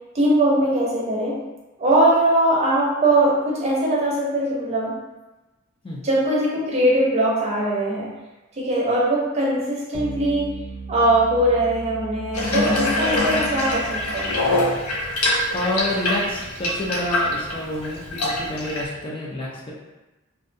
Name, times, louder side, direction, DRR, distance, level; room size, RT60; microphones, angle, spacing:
voice 1, 0.1-1.4 1.8-4.9 6.0-8.1 8.6-10.5 10.9-14.3, right 1 dB, 30° right, -5 dB, 0.6 m, -21 dB
sound 1, 9.9-14.7, right 3 dB, 90° right, 0.5 m, -37 dB
Water tap faucet / Bathtub (filling or washing), 12.3-18.8, left 1 dB, 85° left, 0.5 m, -24 dB
voice 2, 15.5-19.7, left 1 dB, 25° left, -5 dB, 0.4 m, -28 dB
2.6 x 2.2 x 2.5 m, 1.1 s
head